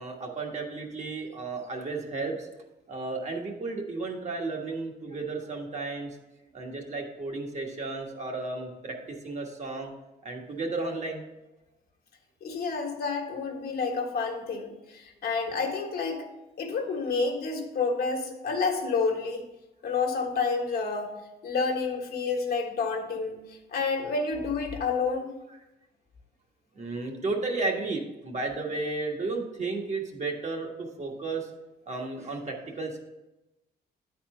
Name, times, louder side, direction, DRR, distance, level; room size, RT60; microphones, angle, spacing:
voice 1, 0.0-2.5 2.9-6.2 6.5-8.9 9.2-9.9 10.2-11.2 26.7-31.5 31.9-33.1, right 3 dB, 40° right, 1 dB, 1.5 m, -33 dB
voice 2, 12.4-16.3 16.6-19.4 19.8-21.1 21.4-25.3, left 4 dB, 65° left, 2 dB, 1.4 m, -29 dB
9.2 x 4.3 x 5.5 m, 0.99 s
cardioid pair, 120°, 17 cm